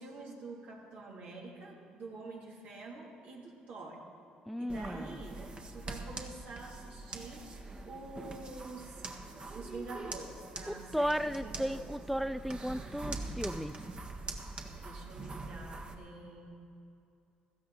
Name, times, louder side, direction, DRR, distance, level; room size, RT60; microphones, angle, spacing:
voice 1, 0.0-4.0 4.6-5.4 5.7-7.4 7.8-9.1 9.5-11.9 14.8-16.5, right 3 dB, 70° right, -3 dB, 3.3 m, -47 dB
voice 2, 4.5-5.2 10.7-13.8, equal, ahead, 13 dB, 0.3 m, -35 dB
sound 1, 4.7-15.9, right 2 dB, 30° right, 1.6 m, -43 dB
16.0 x 13.0 x 4.3 m, 2.6 s
hypercardioid pair, 65°, 3 cm